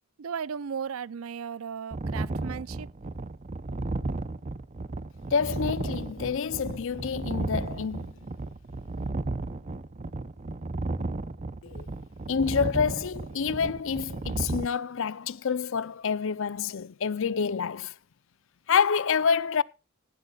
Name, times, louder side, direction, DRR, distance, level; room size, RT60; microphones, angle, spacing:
voice 1, 0.2-2.9, right 7 dB, 85° right, 0.5 m, -36 dB
sound 1, 1.9-14.7, right 2 dB, 35° right, 0.7 m, -34 dB
voice 2, 5.3-8.1 11.6-11.9 12.3-17.9 18.7-19.6, left 6 dB, 70° left, 0.6 m, -27 dB
16.0 x 12.5 x 2.4 m
head